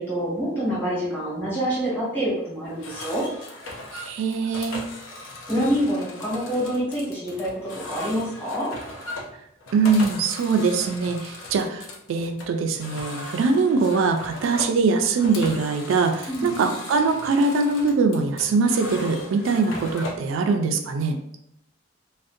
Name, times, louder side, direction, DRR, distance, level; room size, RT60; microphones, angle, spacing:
voice 1, 0.0-3.2 5.4-8.7 16.3-16.7, equal, 10° left, -9 dB, 1.2 m, -26 dB
sound 1, 2.7-20.3, left 2 dB, 85° left, 0.5 m, -38 dB
voice 2, 3.9-4.8 9.7-21.2, right 4 dB, 85° right, 5 dB, 0.3 m, -22 dB
2.5 x 2.1 x 2.5 m, 0.79 s
head